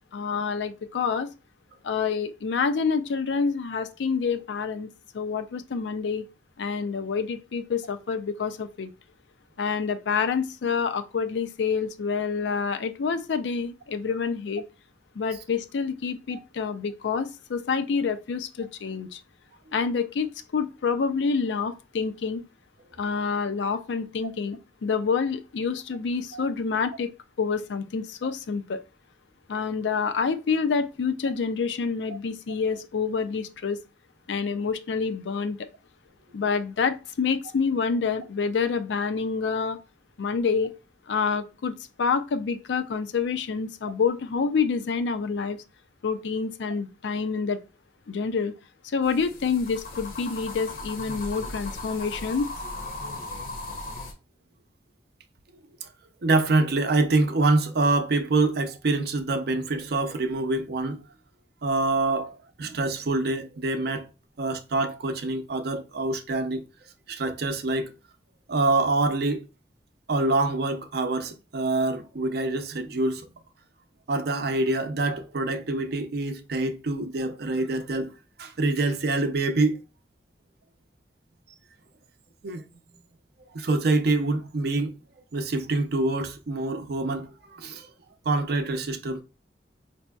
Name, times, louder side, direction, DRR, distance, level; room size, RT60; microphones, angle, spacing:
voice 1, 0.1-1.3 1.8-4.9 5.1-6.2 6.6-8.9 9.6-14.6 15.2-19.2 19.7-22.4 23.0-27.1 27.4-28.8 29.5-33.8 34.3-35.6 36.3-39.8 40.2-40.7 41.1-41.7 42.0-45.6 46.0-47.6 48.1-48.5 48.8-52.5, left 5 dB, 85° left, 0.4 m, -27 dB
sound 1, 49.0-54.1, left 2 dB, 55° left, 0.7 m, -37 dB
voice 2, 56.2-61.0 61.6-64.1 64.4-66.6 67.1-67.9 68.5-69.4 70.1-73.3 74.1-78.1 78.4-79.8 82.4-82.6 83.5-84.9 85.3-87.9 88.3-89.2, right 2 dB, 60° right, 0.5 m, -25 dB
5.0 x 2.7 x 2.3 m
head